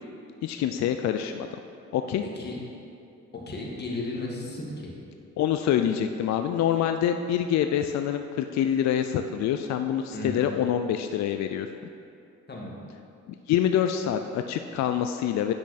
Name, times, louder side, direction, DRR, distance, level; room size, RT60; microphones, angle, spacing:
voice 1, 0.4-1.6 1.9-2.2 5.4-11.7 13.3-15.5, left 9 dB, 65° left, 7 dB, 0.4 m, -26 dB
voice 2, 2.2-2.6 3.3-4.9 10.1-10.4 12.5-12.8, left 2 dB, 35° left, -3 dB, 1.8 m, -34 dB
8.6 x 5.9 x 4.2 m, 2.5 s
cardioid pair, 90°, 30 cm